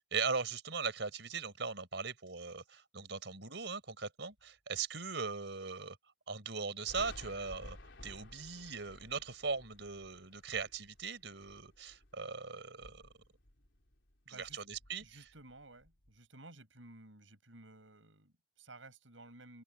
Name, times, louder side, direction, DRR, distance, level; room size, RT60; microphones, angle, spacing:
voice 1, 0.1-6.0 6.3-7.8 8.0-13.0 14.3-15.2, right 5 dB, 70° right, 4.6 m, -39 dB
Thunder, 6.9-12.3 12.7-14.1 14.4-16.1, left 1 dB, 75° left, 3.6 m, -54 dB
voice 2, 14.3-14.6 15.0-19.6, right 2 dB, 90° right, 7.7 m, -55 dB
open air
head